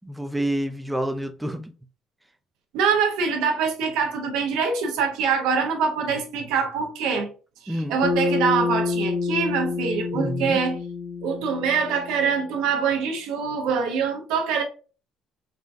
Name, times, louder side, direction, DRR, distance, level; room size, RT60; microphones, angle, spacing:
voice 1, 0.0-1.7 7.7-8.0 10.1-10.6, equal, 5° right, 0.3 m, -28 dB
voice 2, 2.7-7.3 7.6-10.8 11.2-14.6, right 6 dB, 85° right, 0.7 m, -24 dB
Bass guitar, 8.0-12.4, left 4 dB, 50° left, 0.6 m, -27 dB
3.7 x 2.2 x 2.5 m
cardioid pair, 110°, 0 cm